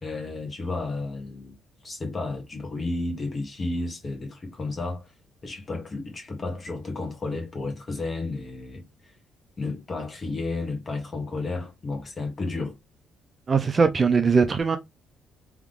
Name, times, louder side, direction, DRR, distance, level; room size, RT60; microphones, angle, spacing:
voice 1, 0.0-1.6 1.8-5.0 5.4-8.9 9.6-12.8, left 3 dB, 25° left, 1.7 m, -32 dB
voice 2, 13.5-14.8, right 5 dB, 30° right, 0.6 m, -20 dB
3.6 x 3.5 x 3.6 m
cardioid pair, 135°, 0 cm